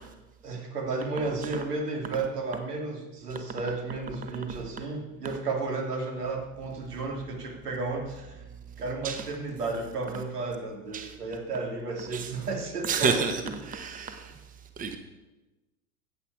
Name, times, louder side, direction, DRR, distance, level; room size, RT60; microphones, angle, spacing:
voice 1, 0.4-8.4 8.8-13.5, right 3 dB, 90° right, 2 dB, 2.8 m, -33 dB
voice 2, 12.8-14.3 14.8-15.0, right 5 dB, 20° right, 7 dB, 1.1 m, -29 dB
15.5 x 8.0 x 4.7 m, 1.1 s
hypercardioid pair, 110°, 45 cm